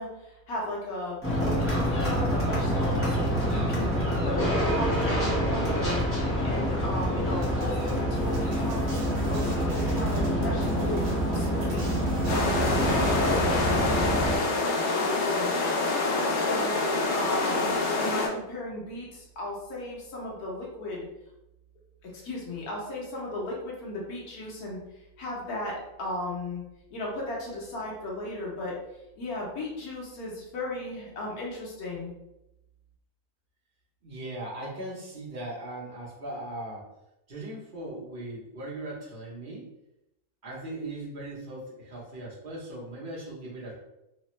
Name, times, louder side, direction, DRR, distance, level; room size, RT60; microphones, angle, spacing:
voice 1, 0.0-3.2 3.5-3.9 4.2-6.0 6.4-9.0 9.3-11.0 11.3-12.0 12.3-15.5 15.8-16.8 17.1-21.1 22.0-24.8 25.2-26.6 26.9-28.8 29.2-32.1, left 1 dB, 85° left, -3 dB, 1.3 m, -35 dB
sound 1, 1.2-14.4, equal, 20° left, 0.4 m, -26 dB
sound 2, 7.4-13.3, right 1 dB, 70° right, 1.2 m, -45 dB
sound 3, 12.3-18.3, left 3 dB, 60° left, 0.8 m, -26 dB
voice 2, 34.0-36.9 37.3-39.6 40.4-43.8, right 1 dB, 40° right, -5 dB, 0.9 m, -39 dB
3.2 x 2.0 x 3.0 m, 0.90 s
omnidirectional pair, 1.5 m